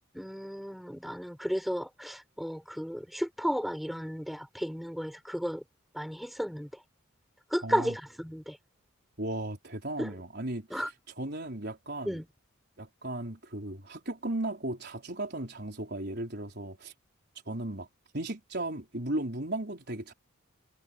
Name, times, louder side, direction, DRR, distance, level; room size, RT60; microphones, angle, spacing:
voice 1, 0.1-5.6 5.9-6.7 7.5-8.6 10.0-10.1 10.7-10.9 12.0-12.2, equal, ahead, 6.5 m, -33 dB
voice 2, 7.6-8.0 9.2-12.2 12.8-16.9 17.5-17.9 18.1-20.1, right 1 dB, 50° right, 4.7 m, -36 dB
head